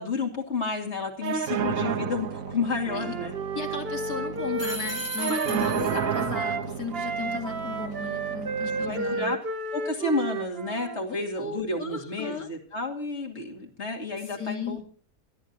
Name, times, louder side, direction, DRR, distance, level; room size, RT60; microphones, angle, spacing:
voice 1, 0.0-3.3 5.8-6.1 8.8-9.4 9.7-14.8, left 3 dB, 45° left, 2 dB, 2.8 m, -31 dB
sound 1, 1.2-9.2, right 7 dB, 65° right, 1.3 m, -32 dB
Wind instrument woodwind instrument, 2.8-6.7 6.9-11.0, right 3 dB, 40° right, 1.6 m, -33 dB
voice 2, 3.5-9.4 11.1-12.5 14.3-14.8, left 5 dB, 75° left, 2 dB, 2.5 m, -35 dB
sound 2, 4.6-6.3, right 1 dB, 15° right, 5.1 m, -36 dB
27.0 x 9.9 x 2.7 m, 0.42 s
omnidirectional pair, 1.6 m